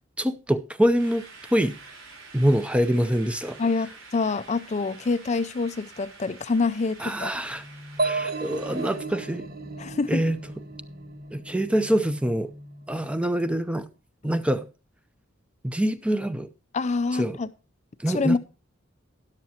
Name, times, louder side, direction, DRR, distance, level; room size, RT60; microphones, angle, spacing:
voice 1, 0.2-1.2 1.5-1.8 2.3-3.6 7.0-7.6 8.0-9.5 10.1-10.4 11.3-12.5 12.9-13.9 14.2-14.7 15.6-16.5 17.1-17.4 18.0-18.4, equal, 5° right, 0.6 m, -25 dB
sound 1, 1.0-9.0, right 3 dB, 75° right, 3.3 m, -48 dB
voice 2, 3.6-7.3 9.8-10.2 16.7-17.5 18.1-18.4, left 4 dB, 35° left, 0.5 m, -26 dB
sound 2, 7.5-13.0, left 1 dB, 30° right, 4.9 m, -45 dB
sound 3, 8.0-11.7, right 3 dB, 50° right, 1.1 m, -32 dB
13.0 x 10.5 x 2.9 m
head